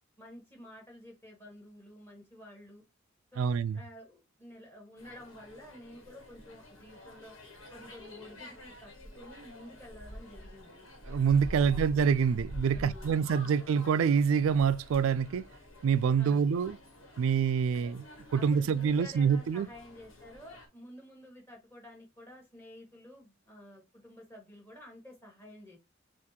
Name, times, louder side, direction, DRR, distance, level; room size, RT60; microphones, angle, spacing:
voice 1, 0.2-2.8 3.3-7.3 7.7-10.9 11.6-11.9 12.7-13.1 16.2-16.4 17.7-17.9 18.3-25.8, left 1 dB, 10° left, 1.7 m, -51 dB
voice 2, 3.4-3.8 11.1-15.4 15.8-16.8 17.2-18.0 18.3-19.7, right 6 dB, 85° right, 0.3 m, -26 dB
sound 1, 5.0-20.7, equal, 80° left, 1.5 m, -47 dB
5.9 x 2.5 x 2.8 m
head